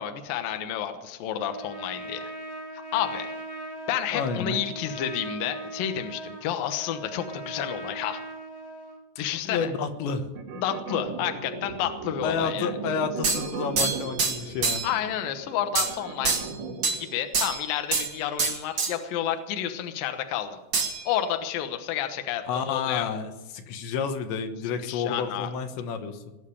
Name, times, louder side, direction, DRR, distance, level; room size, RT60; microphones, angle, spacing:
voice 1, 0.0-2.3 2.9-3.3 3.9-8.2 9.2-9.7 10.5-12.8 14.8-16.4 16.9-20.6 21.1-23.1 24.8-25.5, left 10 dB, 65° left, 7 dB, 2.6 m, -30 dB
Trumpet, 1.4-9.0, right 1 dB, 15° left, 0.7 m, -39 dB
voice 2, 4.1-4.6 9.4-10.3 12.2-14.8 22.5-26.2, left 5 dB, 85° left, 7 dB, 3.5 m, -30 dB
sound 1, 10.4-17.1, right 5 dB, 80° right, 4.3 m, -37 dB
sound 2, 13.2-15.0 15.7-16.0 16.2-17.0 17.3-18.1 18.4-18.9 20.7-21.2, right 4 dB, 55° right, 1.3 m, -26 dB
20.0 x 6.7 x 10.0 m, 1.0 s
omnidirectional pair, 5.0 m